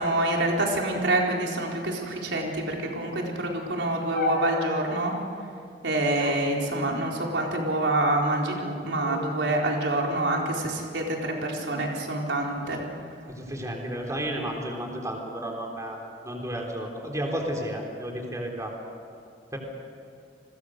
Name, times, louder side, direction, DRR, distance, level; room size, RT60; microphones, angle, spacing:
voice 1, 0.0-5.1 5.8-12.8, right 1 dB, 90° right, -1 dB, 4.3 m, -26 dB
sound 1, 4.1-5.4 6.2-7.4 8.2-8.7 9.0-9.6 10.3-11.6 12.3-12.8, left 2 dB, 60° left, 3.8 m, -37 dB
voice 2, 13.3-16.0 16.2-18.7 19.5-19.6, right 1 dB, 20° right, 1 dB, 3.9 m, -32 dB
30.0 x 21.5 x 6.6 m, 2.6 s
head